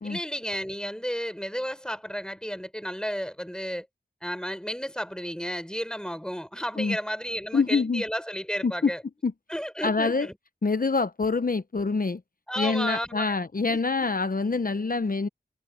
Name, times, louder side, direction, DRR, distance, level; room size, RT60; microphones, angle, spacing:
voice 1, 0.0-3.9 4.2-9.0 9.5-10.4 12.5-13.4 13.7-14.1, equal, 5° left, 4.1 m, -33 dB
voice 2, 7.5-8.0 8.6-8.9 9.2-9.3 9.8-10.3 10.6-12.2 12.6-15.3, left 4 dB, 50° left, 0.7 m, -25 dB
wide cardioid pair, 55°, 18 cm